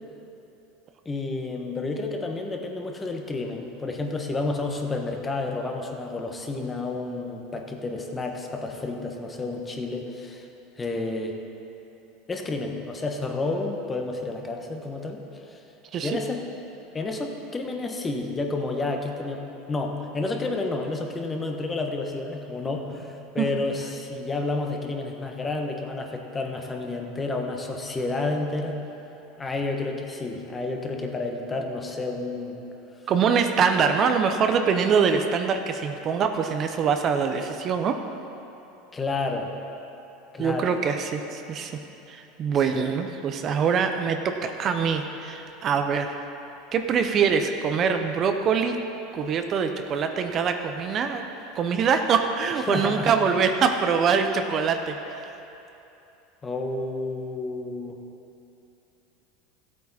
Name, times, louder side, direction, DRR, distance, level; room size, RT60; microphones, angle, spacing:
voice 1, 1.0-10.5 10.8-11.4 12.3-15.2 15.5-15.6 16.0-16.4 16.9-28.8 29.4-32.6 38.9-39.5 40.3-40.7 42.7-42.9 52.7-53.1 56.4-58.0, left 3 dB, 20° left, 3 dB, 1.2 m, -30 dB
voice 2, 33.1-38.0 40.4-41.8 42.1-46.2 46.7-48.8 49.1-51.2 51.5-55.3, right 6 dB, 40° right, 6 dB, 0.7 m, -24 dB
14.5 x 8.4 x 4.2 m, 2.9 s
supercardioid pair, 115°, 0 cm